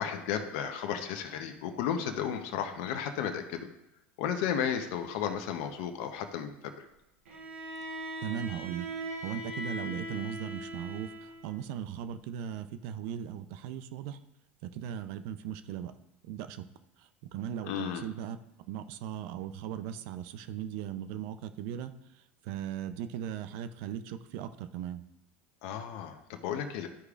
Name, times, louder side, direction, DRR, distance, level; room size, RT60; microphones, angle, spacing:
voice 1, 0.0-3.7 4.2-6.9 17.6-18.1 25.6-26.9, left 8 dB, 65° left, 6 dB, 0.8 m, -33 dB
Bowed string instrument, 7.2-11.5, right 1 dB, 85° right, 1.4 m, -40 dB
voice 2, 8.2-8.8 9.2-11.1 11.4-14.2 14.6-15.9 16.3-16.7 17.3-18.4 18.7-21.9 22.5-25.0, right 10 dB, 65° right, 11 dB, 0.6 m, -38 dB
12.5 x 4.8 x 2.4 m, 0.87 s
hypercardioid pair, 95°, 6 cm